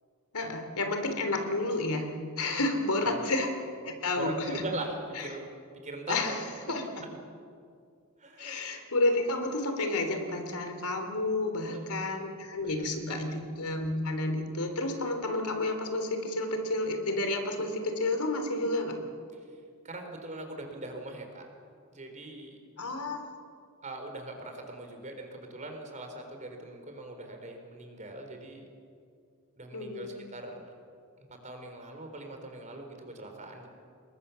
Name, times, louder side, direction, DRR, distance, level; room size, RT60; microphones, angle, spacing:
voice 1, 0.3-2.1 2.4-3.5 3.8-4.6 5.2-5.3 6.1-6.4 6.7-6.8 8.4-19.0 22.8-23.2 29.7-30.2, left 2 dB, 85° left, 5 dB, 3.6 m, -30 dB
voice 2, 4.1-5.5 5.8-6.4 8.2-8.6 11.6-11.9 12.8-13.3 19.8-21.4 21.9-22.6 23.8-28.7 29.6-30.6 31.4-33.7, right 2 dB, 35° right, 4 dB, 4.1 m, -41 dB
28.0 x 22.0 x 7.1 m, 2.3 s
head